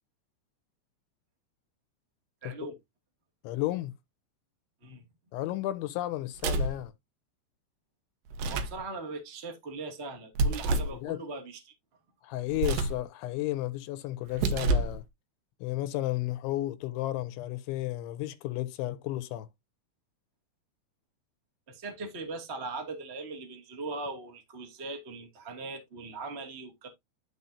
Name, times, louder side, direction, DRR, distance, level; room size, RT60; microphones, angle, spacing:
voice 1, 2.4-2.8 4.8-5.0 8.5-11.7 21.7-26.9, right 3 dB, 35° right, 0.9 m, -40 dB
voice 2, 3.4-3.9 5.3-6.9 10.9-11.2 12.2-15.0 15.6-19.5, left 15 dB, 80° left, 3.0 m, -33 dB
sound 1, 6.4-6.8 8.3-8.8 10.4-11.0 12.5-13.0 14.3-15.0, right 2 dB, 75° right, 2.1 m, -28 dB
12.5 x 4.4 x 2.7 m
omnidirectional pair, 5.5 m